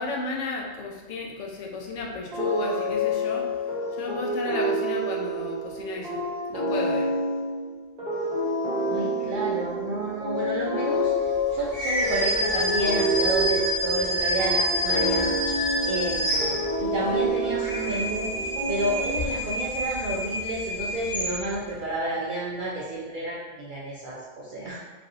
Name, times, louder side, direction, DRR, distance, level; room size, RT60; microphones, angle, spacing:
voice 1, 0.0-3.5 3.9-6.2 6.5-7.1, left 3 dB, 75° left, 0 dB, 0.9 m, -33 dB
sound 1, 2.3-19.5, equal, 40° right, 0.9 m, -28 dB
voice 2, 8.8-15.3 15.9-18.3 18.7-24.8, right 1 dB, 60° right, -6 dB, 0.5 m, -30 dB
sound 2, 11.7-17.0 17.4-21.7, equal, 20° left, 1.0 m, -28 dB
3.2 x 2.6 x 2.5 m, 1.2 s
omnidirectional pair, 1.3 m